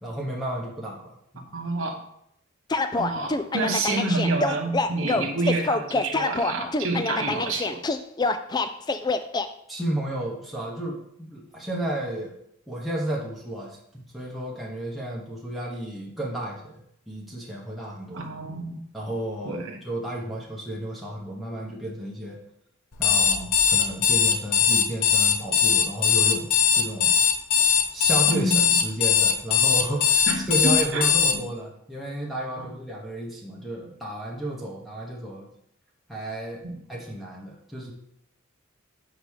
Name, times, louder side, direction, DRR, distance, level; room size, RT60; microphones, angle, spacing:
voice 1, 0.0-1.5 9.7-12.3 12.7-18.3 18.9-22.4 23.0-27.1 27.9-35.5 36.1-36.6 36.9-37.9, right 1 dB, ahead, -4 dB, 1.1 m, -32 dB
voice 2, 1.5-2.0 2.9-7.8 18.1-18.8 19.4-19.8 28.3-28.7 30.3-31.1 31.3-31.4 32.6-32.7 36.6-36.8, right 2 dB, 60° right, 1 dB, 1.0 m, -28 dB
sound 1, 2.7-9.5, left 3 dB, 20° left, 0.3 m, -26 dB
Alarm, 22.9-31.3, left 7 dB, 80° left, 0.9 m, -20 dB
5.2 x 4.7 x 6.4 m, 0.75 s
head